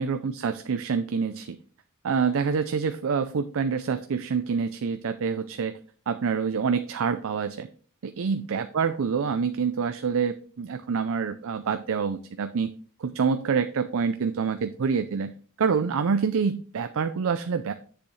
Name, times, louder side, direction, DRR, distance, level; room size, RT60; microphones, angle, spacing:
voice 1, 0.0-1.6 2.0-5.8 6.1-7.7 8.0-12.7 13.0-15.3 15.6-17.7, right 6 dB, 65° right, 10 dB, 0.5 m, -26 dB
7.7 x 6.9 x 3.2 m, 0.43 s
head